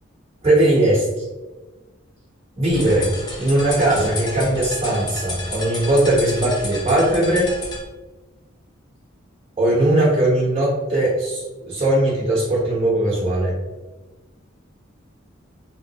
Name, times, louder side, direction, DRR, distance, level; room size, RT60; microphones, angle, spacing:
voice 1, 0.4-1.2 2.6-3.1 3.4-7.5 9.6-13.5, right 1 dB, 30° right, -6 dB, 0.7 m, -19 dB
sound 1, 2.7-7.8, left 1 dB, 20° left, 0.5 m, -31 dB
3.3 x 2.6 x 2.7 m, 1.2 s
head